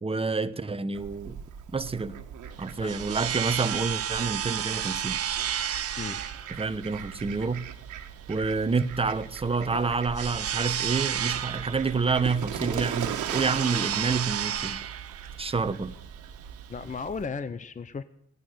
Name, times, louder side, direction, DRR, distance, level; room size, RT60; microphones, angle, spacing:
voice 1, 0.0-1.4 1.7-2.1 2.6-5.2 6.5-7.7 8.3-14.8 15.4-16.0, right 4 dB, 20° right, 1.0 m, -28 dB
Fowl, 0.9-17.3, right 9 dB, 80° right, 1.7 m, -39 dB
sound 1, 2.5-17.1, right 9 dB, 50° right, 1.0 m, -33 dB
voice 2, 16.7-18.0, left 5 dB, 25° left, 0.8 m, -35 dB
16.5 x 10.5 x 7.8 m
cardioid pair, 90°, 30 cm